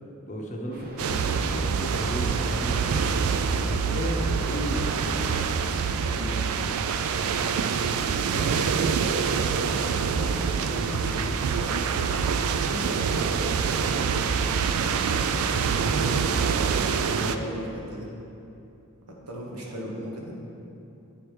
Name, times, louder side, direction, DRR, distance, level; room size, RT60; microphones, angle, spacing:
voice 1, 0.3-3.0 3.5-4.9 7.7-12.2, equal, 35° left, -1 dB, 0.7 m, -36 dB
sound 1, 0.7-5.8, equal, 40° right, 0.7 m, -41 dB
sound 2, 1.0-17.4, right 6 dB, 70° right, 0.3 m, -26 dB
voice 2, 5.7-6.6 12.6-14.3 15.1-18.1 19.1-20.3, equal, 90° right, -2 dB, 1.1 m, -37 dB
8.8 x 3.0 x 4.8 m, 2.7 s
head